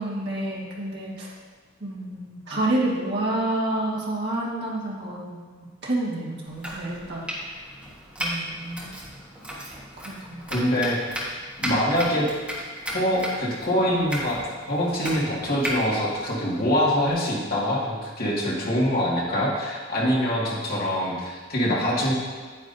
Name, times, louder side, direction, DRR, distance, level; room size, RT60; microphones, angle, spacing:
voice 1, 0.0-1.3 1.8-5.5 5.8-7.2 8.2-9.0 10.0-10.4, right 1 dB, 55° right, -5 dB, 1.8 m, -29 dB
Domestic sounds home sounds, 6.5-17.1, equal, 5° right, 1.5 m, -35 dB
voice 2, 10.5-11.0 11.6-12.3 12.9-14.4 14.7-22.1, equal, 50° left, -5 dB, 2.0 m, -24 dB
9.5 x 9.5 x 2.7 m, 1.5 s
head